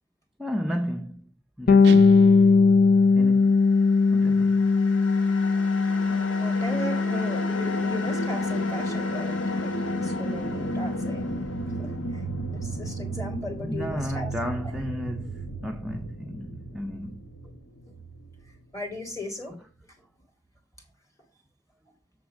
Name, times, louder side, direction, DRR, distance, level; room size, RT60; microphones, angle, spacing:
voice 1, 0.4-1.3 1.6-2.1 3.1-3.6 4.1-4.6 13.6-17.2, equal, ahead, 0.5 m, -33 dB
Bass guitar, 1.7-11.3, left 4 dB, 55° left, 0.6 m, -21 dB
sound 1, 1.8-3.5, right 8 dB, 60° right, 0.4 m, -32 dB
sound 2, 4.0-19.2, equal, 85° left, 1.3 m, -34 dB
voice 2, 6.0-9.7 10.0-11.5 11.8-12.2 12.5-14.4 18.7-19.6, equal, 15° left, 1.9 m, -37 dB
7.2 x 3.7 x 6.2 m
head